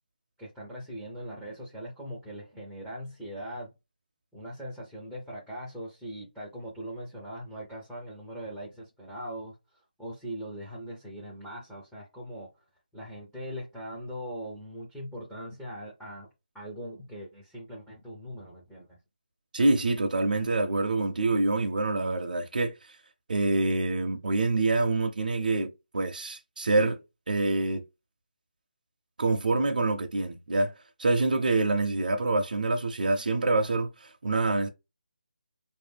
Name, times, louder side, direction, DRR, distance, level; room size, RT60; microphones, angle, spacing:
voice 1, 0.4-3.7 4.3-9.6 10.0-12.5 12.9-16.3 16.5-19.0, equal, ahead, 0.4 m, -40 dB
voice 2, 19.5-23.0 23.3-27.0 27.3-27.8 29.2-30.7 31.0-34.7, right 2 dB, 65° right, 0.6 m, -26 dB
4.6 x 2.6 x 3.4 m
hypercardioid pair, 175°, 5 cm